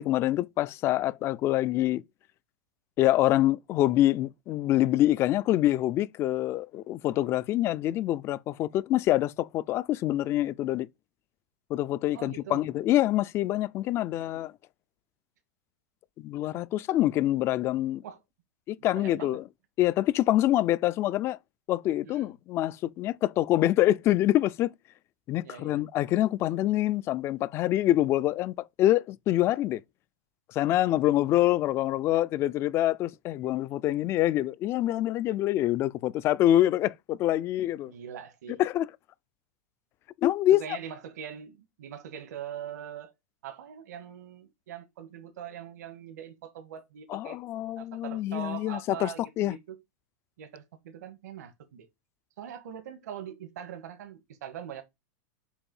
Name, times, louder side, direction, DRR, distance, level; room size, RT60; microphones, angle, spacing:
voice 1, 0.0-2.0 3.0-10.9 11.7-14.5 16.2-18.0 18.7-19.4 19.8-21.4 21.7-24.7 25.3-29.8 30.5-37.9 38.6-38.9 40.2-40.6 47.1-49.6, left 14 dB, 30° left, 0.4 m, -26 dB
voice 2, 12.1-12.6 14.2-14.4 18.0-18.2 18.8-19.4 22.0-22.3 25.4-25.8 37.9-38.6 40.5-43.1 43.4-47.4 47.8-49.8 50.4-51.9 52.4-54.8, right 9 dB, 75° right, 1.7 m, -42 dB
7.0 x 2.6 x 5.4 m
supercardioid pair, 150°, 9 cm